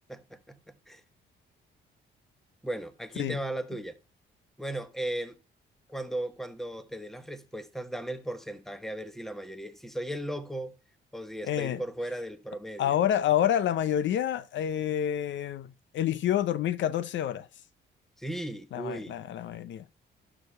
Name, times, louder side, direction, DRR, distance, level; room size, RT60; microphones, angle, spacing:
voice 1, 0.1-0.6 0.9-1.0 2.6-4.0 4.6-5.4 5.9-10.8 11.1-13.0 18.2-19.2, right 1 dB, ahead, 1.2 m, -36 dB
voice 2, 11.4-11.8 12.8-15.7 15.9-17.5 18.7-19.9, left 10 dB, 70° left, 0.6 m, -28 dB
12.0 x 5.1 x 5.5 m
cardioid pair, 90°, 20 cm